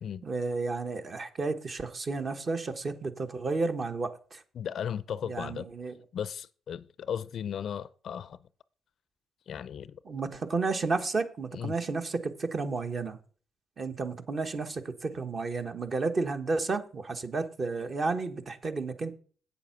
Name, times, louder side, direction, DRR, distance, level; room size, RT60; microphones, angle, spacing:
voice 1, 0.2-4.4 5.3-5.9 10.0-13.2 13.8-19.1, right 3 dB, 40° right, 1.1 m, -32 dB
voice 2, 4.6-5.7 6.1-8.4 9.5-10.0 11.5-11.7, left 8 dB, 60° left, 0.4 m, -36 dB
8.3 x 7.1 x 5.8 m
cardioid pair, 90°, 0 cm